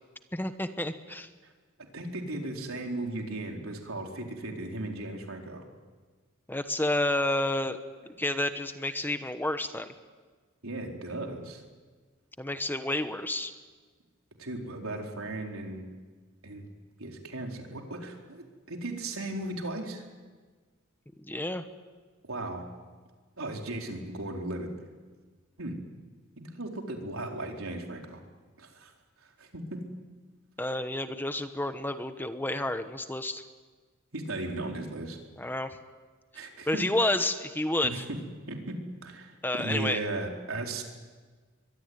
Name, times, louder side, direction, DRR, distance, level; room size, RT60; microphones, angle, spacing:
voice 1, 0.3-1.3 6.5-7.8 8.2-9.9 12.4-13.5 21.2-21.6 30.6-33.4 35.4-35.8 36.7-38.0 39.4-40.0, left 1 dB, 10° left, 9 dB, 1.1 m, -30 dB
voice 2, 1.9-5.6 10.6-11.6 14.4-15.9 16.4-16.7 17.0-20.0 22.2-22.6 23.4-24.7 25.6-25.8 26.4-28.2 28.6-28.9 29.4-29.8 34.1-35.2 36.3-36.8 37.8-38.2 38.5-38.8 39.0-40.8, right 2 dB, 80° right, 1 dB, 4.3 m, -36 dB
23.5 x 23.0 x 9.6 m, 1.5 s
head